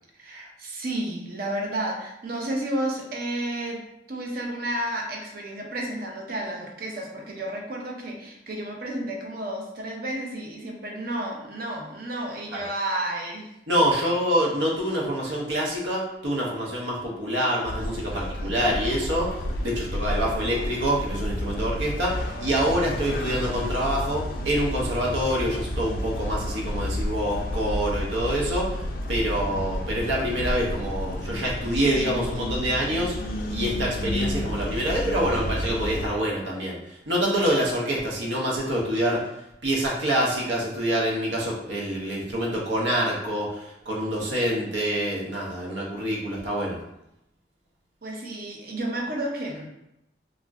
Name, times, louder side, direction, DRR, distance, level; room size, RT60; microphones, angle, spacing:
voice 1, 0.2-13.5 18.1-18.7 48.0-49.7, right 1 dB, 55° right, 0 dB, 0.5 m, -32 dB
voice 2, 13.7-33.2 33.5-39.3 39.6-46.8, equal, 90° right, -3 dB, 0.7 m, -26 dB
sound 1, 17.6-36.1, left 1 dB, 50° left, 0.3 m, -31 dB
2.5 x 2.1 x 3.4 m, 0.85 s
head